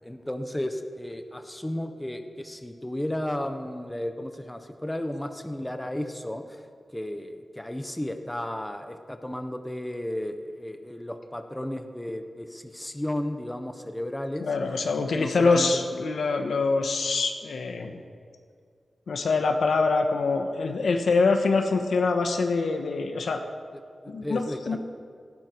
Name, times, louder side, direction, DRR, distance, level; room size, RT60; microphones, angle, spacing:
voice 1, 0.0-6.6 6.9-14.5 15.1-15.8 23.7-24.8, left 1 dB, 10° left, 7 dB, 1.1 m, -34 dB
voice 2, 14.4-18.0 19.1-23.4 24.1-24.8, left 4 dB, 85° left, 5 dB, 1.4 m, -24 dB
17.5 x 16.0 x 4.6 m, 2.1 s
wide cardioid pair, 105°, 0 cm